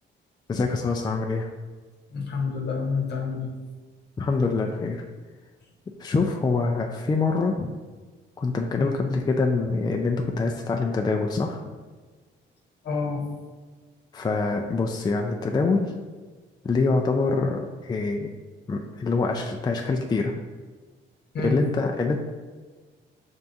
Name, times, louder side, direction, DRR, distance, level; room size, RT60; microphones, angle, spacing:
voice 1, 0.5-1.5 4.2-5.0 6.0-7.7 8.4-11.6 14.1-15.9 16.6-18.3 18.7-20.3 21.4-22.2, left 3 dB, 20° left, 2 dB, 0.3 m, -25 dB
voice 2, 2.1-3.5 8.8-9.0 12.8-13.2 21.3-21.6, left 4 dB, 60° left, 1 dB, 0.9 m, -28 dB
5.4 x 3.5 x 2.6 m, 1.4 s
cardioid pair, 90°, 20 cm